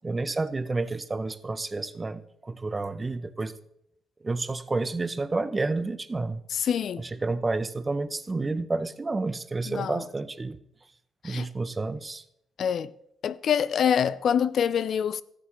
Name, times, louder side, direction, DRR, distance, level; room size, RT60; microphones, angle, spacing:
voice 1, 0.0-3.5 4.2-6.4 7.0-10.6 11.2-12.2, right 3 dB, 25° right, 0.6 m, -30 dB
voice 2, 6.5-7.0 9.7-10.1 11.2-11.5 12.6-12.9 13.2-15.2, left 8 dB, 60° left, 0.3 m, -25 dB
13.5 x 9.8 x 3.0 m
cardioid pair, 90°, 0 cm